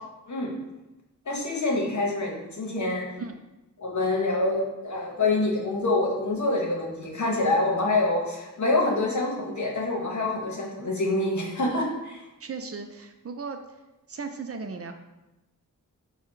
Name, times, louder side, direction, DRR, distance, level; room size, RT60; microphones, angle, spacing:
voice 1, 1.3-3.0 3.8-12.2, left 2 dB, 60° left, -1 dB, 1.1 m, -26 dB
voice 2, 12.4-13.6 14.1-14.9, right 4 dB, 45° right, 6 dB, 0.5 m, -36 dB
4.9 x 2.3 x 4.5 m, 0.99 s
wide cardioid pair, 85°, 33 cm